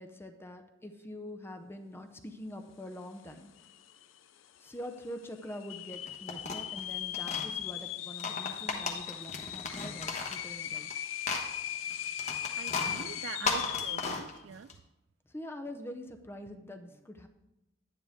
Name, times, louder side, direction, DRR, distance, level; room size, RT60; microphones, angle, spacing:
voice 1, 0.0-3.5 4.6-10.9 13.4-13.6 15.3-17.3, left 1 dB, 10° left, 0.6 m, -44 dB
sound 1, 3.3-3.4 3.6-4.2 4.7-4.8 5.5-14.2, left 11 dB, 90° left, 0.5 m, -38 dB
sound 2, 5.9-7.5 8.1-10.9 11.2-14.7, left 4 dB, 35° left, 1.1 m, -35 dB
voice 2, 12.6-14.7, right 8 dB, 75° right, 0.4 m, -44 dB
11.0 x 9.7 x 3.5 m
head